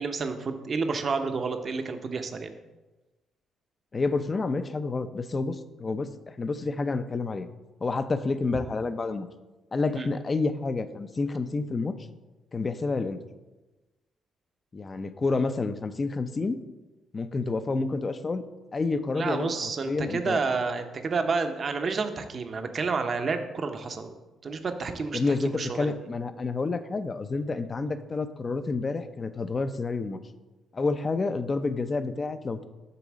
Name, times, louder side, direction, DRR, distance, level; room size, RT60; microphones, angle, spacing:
voice 1, 0.0-2.5 10.0-10.1 19.2-24.1 24.4-25.9, right 4 dB, 45° right, 7 dB, 0.8 m, -30 dB
voice 2, 3.9-6.1 6.4-7.5 7.8-9.3 9.7-11.9 12.5-13.2 14.7-16.6 17.1-18.4 18.7-20.4 25.1-30.2 30.7-32.7, left 3 dB, 30° left, 11 dB, 0.5 m, -29 dB
6.9 x 3.9 x 6.2 m, 1.1 s
cardioid pair, 90°, 0 cm